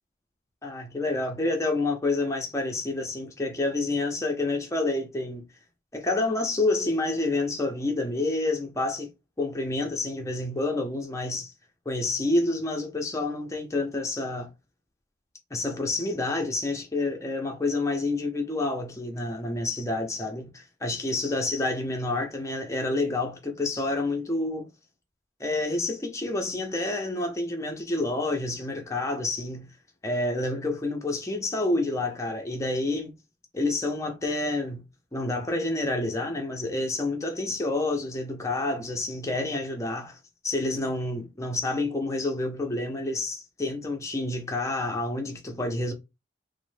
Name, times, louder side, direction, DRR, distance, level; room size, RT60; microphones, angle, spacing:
voice 1, 0.6-5.4 5.9-9.1 9.4-11.5 11.9-14.5 15.5-24.7 25.4-29.7 30.0-33.1 33.5-34.8 35.1-40.2 40.4-45.9, left 2 dB, 15° left, 0.5 m, -28 dB
3.0 x 2.0 x 3.1 m
head